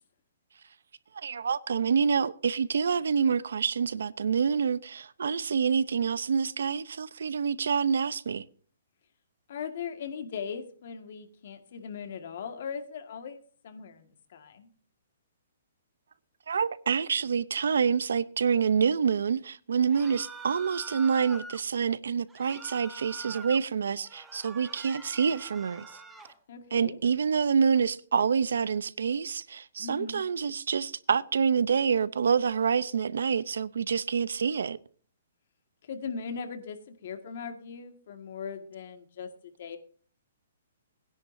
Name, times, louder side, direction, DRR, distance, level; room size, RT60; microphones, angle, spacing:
voice 1, 1.1-8.4 16.5-25.9 26.7-34.8, right 6 dB, 80° right, 0.7 m, -27 dB
voice 2, 9.5-14.7 26.5-27.0 29.8-30.2 35.9-39.3 39.6-39.8, left 6 dB, 50° left, 1.8 m, -39 dB
sound 1, 19.9-21.6 22.3-23.6 24.0-26.3, right 3 dB, 5° right, 1.0 m, -45 dB
21.0 x 10.5 x 2.7 m
hypercardioid pair, 170°, 0 cm